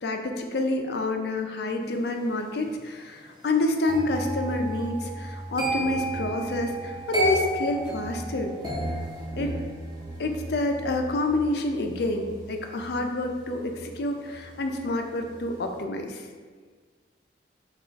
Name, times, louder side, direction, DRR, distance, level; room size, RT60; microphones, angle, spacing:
voice 1, 0.0-8.5 9.4-9.6 10.2-16.3, left 2 dB, 60° left, 4 dB, 0.4 m, -28 dB
sound 1, 3.9-14.8 15.1-15.5, right 1 dB, 20° right, 0.8 m, -33 dB
5.1 x 2.4 x 3.4 m, 1.5 s
head